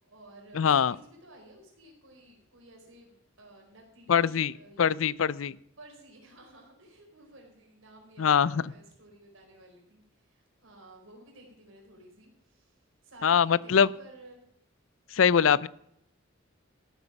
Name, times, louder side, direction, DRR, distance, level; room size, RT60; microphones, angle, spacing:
voice 1, 0.0-5.0 5.8-14.4, right 1 dB, 85° right, 1 dB, 4.3 m, -54 dB
voice 2, 0.5-0.9 4.1-5.6 8.2-8.6 13.2-13.9 15.1-15.7, left 7 dB, 85° left, 21 dB, 0.5 m, -23 dB
14.0 x 8.3 x 5.9 m, 0.74 s
head